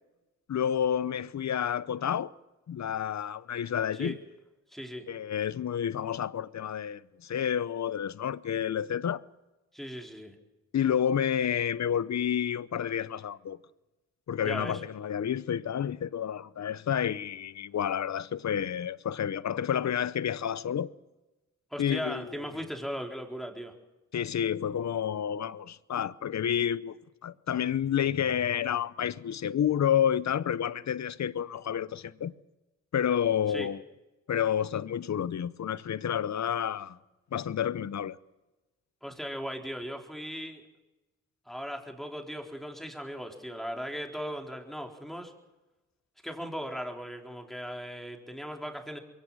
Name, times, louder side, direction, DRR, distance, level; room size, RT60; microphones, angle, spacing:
voice 1, 0.5-2.3 2.7-4.2 5.1-9.2 10.7-13.6 14.3-20.9 21.8-22.4 24.1-27.0 27.2-32.3 32.9-33.8 34.3-37.0 37.3-38.2, left 9 dB, 60° left, 0.8 m, -30 dB
voice 2, 4.7-5.1 9.7-10.3 14.4-14.8 21.7-23.8 33.5-33.7 39.0-40.6 41.5-45.3 46.2-49.0, equal, ahead, 4.1 m, -38 dB
22.5 x 17.5 x 7.5 m
cardioid pair, 50°, 31 cm